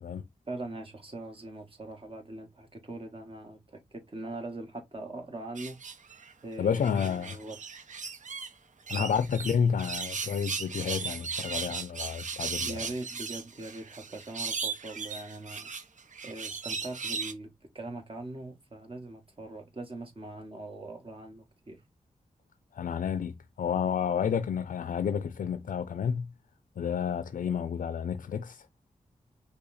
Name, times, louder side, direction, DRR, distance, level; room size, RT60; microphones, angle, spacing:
voice 1, 0.5-5.8 6.4-7.6 9.0-9.2 12.6-15.7 16.2-17.5 17.7-21.8, right 2 dB, 40° right, 1.4 m, -41 dB
sound 1, 5.6-6.3 6.8-8.5 8.9-17.3, right 5 dB, 65° right, 0.7 m, -37 dB
voice 2, 6.6-7.4 8.9-12.9 22.7-26.3 26.8-28.6, left 7 dB, 75° left, 0.4 m, -30 dB
5.5 x 2.3 x 4.1 m
wide cardioid pair, 85°, 14 cm